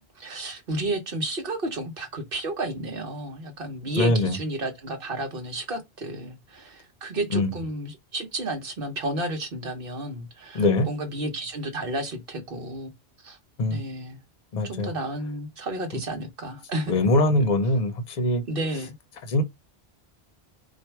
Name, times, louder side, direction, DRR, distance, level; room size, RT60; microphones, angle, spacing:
voice 1, 0.2-12.9 13.2-13.4 13.7-14.2 14.6-17.1 18.5-18.9, right 1 dB, 60° right, 1.3 m, -32 dB
voice 2, 4.0-4.4 7.3-7.5 10.5-10.9 13.6-13.8 14.5-14.9 16.9-18.4 19.3-19.4, left 2 dB, 45° left, 0.8 m, -22 dB
4.5 x 2.5 x 4.5 m
omnidirectional pair, 1.1 m